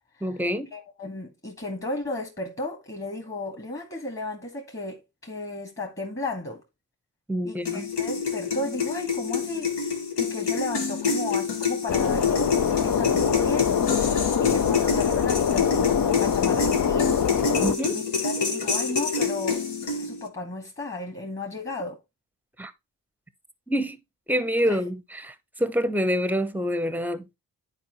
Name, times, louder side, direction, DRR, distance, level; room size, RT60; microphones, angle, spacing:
voice 1, 0.2-0.7 7.3-7.9 17.6-18.0 22.6-22.7 23.7-24.0 24.3-27.4, equal, 5° right, 0.8 m, -26 dB
voice 2, 0.7-6.6 7.4-17.2 17.9-22.0 24.6-24.8, left 2 dB, 25° left, 2.0 m, -34 dB
sound 1, 7.7-20.3, left 5 dB, 65° left, 1.6 m, -27 dB
sound 2, 11.9-17.8, left 7 dB, 45° left, 0.7 m, -24 dB
9.9 x 4.5 x 3.1 m
supercardioid pair, 45°, 44 cm